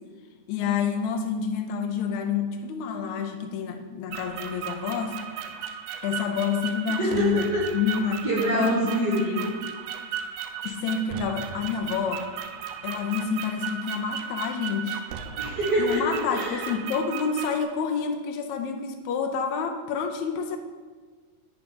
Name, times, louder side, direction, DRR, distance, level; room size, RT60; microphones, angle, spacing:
voice 1, 0.5-5.2 6.0-7.4 7.7-8.3 8.5-9.5 10.6-12.3 12.8-15.0 15.8-20.6, left 6 dB, 80° left, 4 dB, 1.9 m, -28 dB
sound 1, 4.1-17.6, right 8 dB, 85° right, 1.4 m, -36 dB
voice 2, 7.0-7.7 8.2-9.4 15.4-16.7, right 1 dB, 60° right, -6 dB, 1.1 m, -25 dB
10.5 x 3.6 x 5.2 m, 1.5 s
omnidirectional pair, 3.4 m